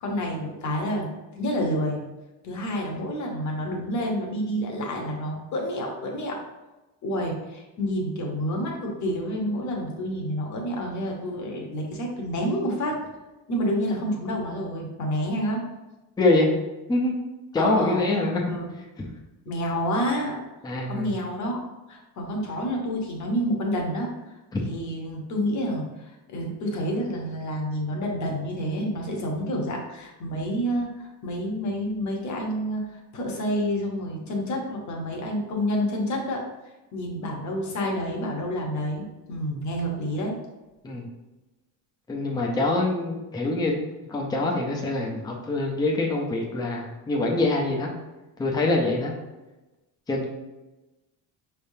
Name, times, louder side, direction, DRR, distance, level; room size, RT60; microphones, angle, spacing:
voice 1, 0.0-2.0 2.4-6.4 7.0-13.0 13.5-15.6 17.6-18.0 18.5-18.7 19.4-20.4 20.9-24.1 24.7-30.9 31.2-36.4 36.9-40.3, equal, 45° left, 0 dB, 1.1 m, -29 dB
voice 2, 16.2-16.5 16.9-17.1 17.5-18.4 20.6-21.1 24.5-24.6 40.8-41.1 42.1-43.7 44.1-47.9 48.4-49.1 50.1-50.3, left 2 dB, 10° left, -1 dB, 0.6 m, -24 dB
5.5 x 3.5 x 2.7 m, 1.1 s
cardioid pair, 155°, 41 cm